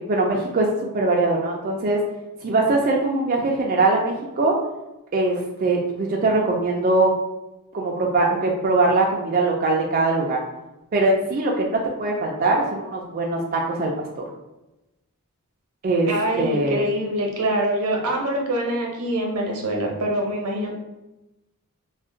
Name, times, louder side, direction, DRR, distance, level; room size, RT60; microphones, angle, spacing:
voice 1, 0.1-0.7 0.9-2.0 2.4-4.5 5.1-7.1 7.7-10.4 10.9-14.2 15.8-16.1 16.4-16.8, right 2 dB, 40° right, -1 dB, 0.3 m, -21 dB
voice 2, 16.1-20.7, right 1 dB, 80° right, 0 dB, 0.7 m, -24 dB
2.4 x 2.1 x 3.7 m, 0.97 s
head